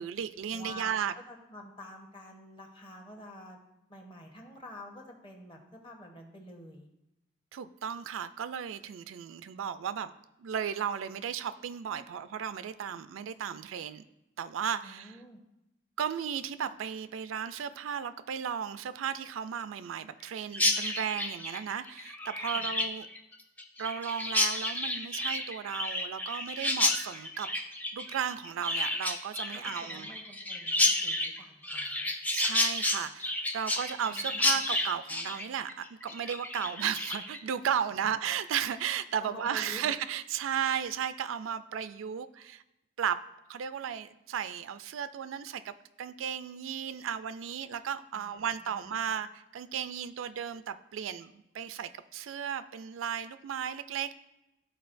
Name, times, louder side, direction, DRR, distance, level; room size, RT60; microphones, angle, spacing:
voice 1, 0.0-1.1 7.5-10.1 10.4-14.0 14.4-15.2 16.0-23.1 23.8-27.5 27.9-30.1 32.3-42.6 43.0-43.2 43.5-54.1, right 8 dB, 85° right, 12 dB, 0.3 m, -35 dB
voice 2, 0.5-0.9 1.3-3.6 3.9-6.9 14.8-15.4 22.5-22.7 29.5-32.1 34.1-34.6 39.2-39.8 48.1-49.1, left 1 dB, 25° left, 2 dB, 0.9 m, -49 dB
Chirp tweet, 20.5-37.4, left 1 dB, 10° left, 0.3 m, -31 dB
12.5 x 4.4 x 2.5 m, 0.90 s
head